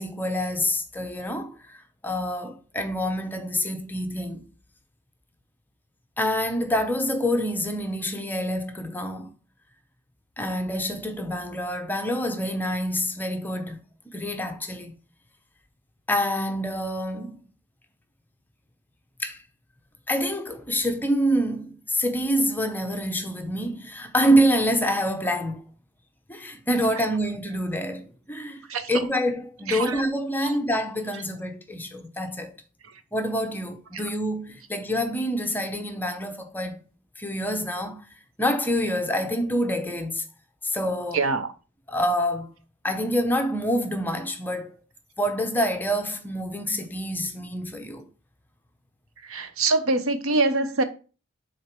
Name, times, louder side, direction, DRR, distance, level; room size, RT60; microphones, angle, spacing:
voice 1, 0.0-4.4 6.2-9.3 10.4-13.8 14.1-14.9 16.1-17.4 19.2-19.4 20.1-25.6 26.3-28.6 28.9-32.5 33.1-36.8 37.2-38.0 38.4-40.2 40.6-41.2 41.9-42.5 42.8-44.8 45.2-48.1, equal, 10° left, 0.6 m, -26 dB
voice 2, 41.1-41.5 49.3-50.8, right 3 dB, 70° right, 0.8 m, -24 dB
6.3 x 3.9 x 4.4 m
head